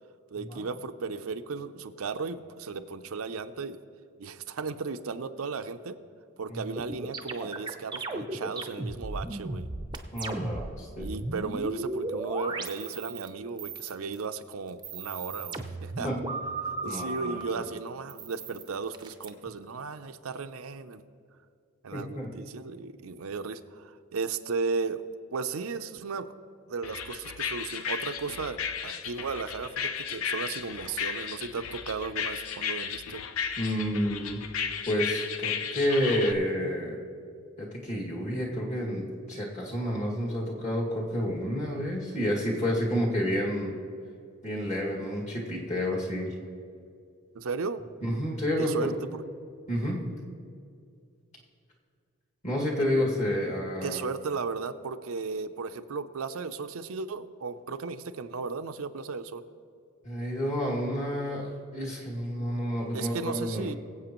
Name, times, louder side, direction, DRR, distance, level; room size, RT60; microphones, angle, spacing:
voice 1, 0.3-3.8 4.2-6.0 6.4-9.7 11.0-16.1 16.7-21.0 21.8-25.0 25.3-26.3 26.7-33.2 47.3-47.8 48.6-49.2 53.8-59.4 62.9-63.8, right 4 dB, 90° right, 9 dB, 0.6 m, -35 dB
sound 1, 6.8-10.7 11.0-13.3 13.6-14.2 14.7-17.4 18.1-19.3, right 2 dB, 20° right, 0.6 m, -35 dB
voice 2, 10.1-11.1 16.0-16.2 16.9-17.6 21.9-22.3 33.6-34.4 34.9-37.0 37.6-43.8 44.4-46.3 48.0-48.9 49.7-50.0 52.4-54.0 60.0-63.8, equal, 35° left, -3 dB, 2.2 m, -30 dB
sound 2, 26.8-36.3, left 7 dB, 80° left, 0.6 m, -34 dB
22.5 x 8.1 x 3.0 m, 2.3 s
head